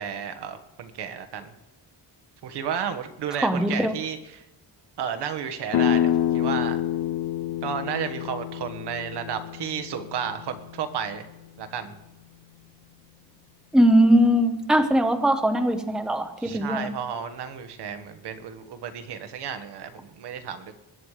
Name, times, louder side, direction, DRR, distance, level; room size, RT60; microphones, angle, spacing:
voice 1, 0.0-1.5 2.4-4.4 5.0-6.8 7.6-11.2 11.6-11.9 16.4-20.7, right 7 dB, 75° right, 8 dB, 1.5 m, -32 dB
voice 2, 3.4-3.9 13.7-16.9, equal, ahead, 7 dB, 0.9 m, -20 dB
sound 1, 5.7-11.3, left 10 dB, 70° left, 0.6 m, -27 dB
22.0 x 9.8 x 5.0 m, 0.95 s
cardioid pair, 160°, 40 cm